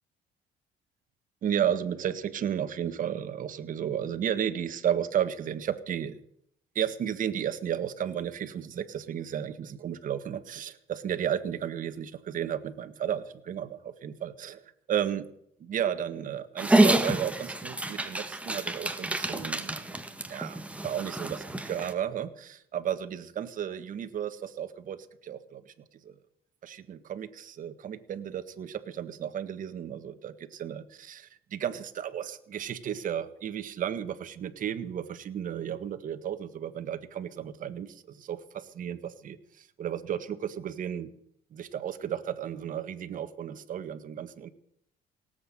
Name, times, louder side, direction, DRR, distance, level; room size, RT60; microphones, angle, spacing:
voice 1, 1.4-6.2 6.7-14.6 14.9-15.3 15.6-20.0 20.3-25.7 26.0-26.1 26.6-41.1 41.5-44.5, right 9 dB, 50° right, 9 dB, 1.6 m, -33 dB
Dog, 16.6-21.9, right 2 dB, 5° right, 1.7 m, -28 dB
18.0 x 8.2 x 9.1 m, 0.70 s
cardioid pair, 110°, 17 cm